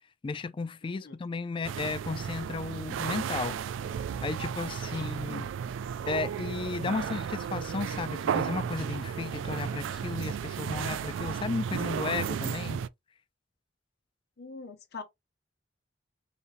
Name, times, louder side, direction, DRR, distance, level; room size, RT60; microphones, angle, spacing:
voice 1, 0.2-3.6 4.2-5.5 6.1-12.8, left 4 dB, 25° left, 0.3 m, -34 dB
voice 2, 0.8-1.1 4.9-5.1 14.4-15.0, left 4 dB, 60° left, 0.8 m, -43 dB
sound 1, 1.6-12.9, right 7 dB, 85° right, 0.3 m, -34 dB
5.0 x 2.8 x 2.6 m
head